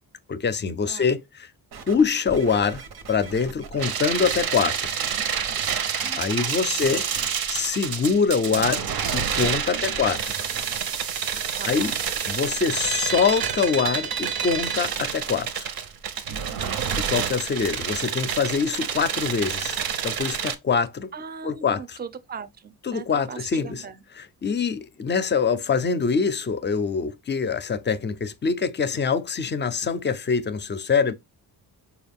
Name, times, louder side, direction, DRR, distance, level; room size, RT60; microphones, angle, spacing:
voice 1, 0.3-1.2 1.9-2.8 3.1-4.9 6.2-7.1 7.5-8.9 9.1-10.4 11.7-11.9 12.3-15.7 17.0-21.1 21.4-21.8 22.9-23.8 24.4-31.1, left 5 dB, 30° left, 0.4 m, -24 dB
voice 2, 0.9-1.2 6.5-6.9 9.7-10.1 11.6-12.1 16.3-16.8 21.1-24.0, right 6 dB, 25° right, 0.5 m, -40 dB
sound 1, 1.7-4.4 5.0-6.5 6.8-7.3 8.5-10.8 11.4-11.5, right 4 dB, 85° right, 1.1 m, -41 dB
sound 2, 3.8-20.6, right 7 dB, 70° right, 0.8 m, -28 dB
4.6 x 2.4 x 3.5 m
cardioid pair, 130°, 38 cm